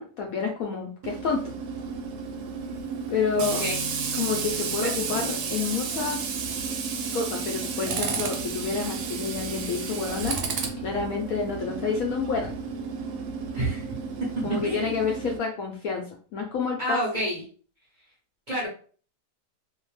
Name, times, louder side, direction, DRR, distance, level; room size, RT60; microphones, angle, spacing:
voice 1, 0.0-1.5 3.1-3.6 4.1-6.2 7.1-10.4 10.8-12.5 14.4-16.1 16.3-17.0, left 5 dB, 70° left, 0 dB, 0.8 m, -29 dB
Tools, 1.0-15.4, right 5 dB, 75° right, 1.1 m, -32 dB
voice 2, 3.4-3.9 4.8-5.0 13.5-13.9 14.3-14.9 16.8-17.4 18.5-18.7, right 1 dB, 35° right, -6 dB, 0.8 m, -29 dB
2.7 x 2.1 x 3.1 m, 0.41 s
omnidirectional pair, 1.8 m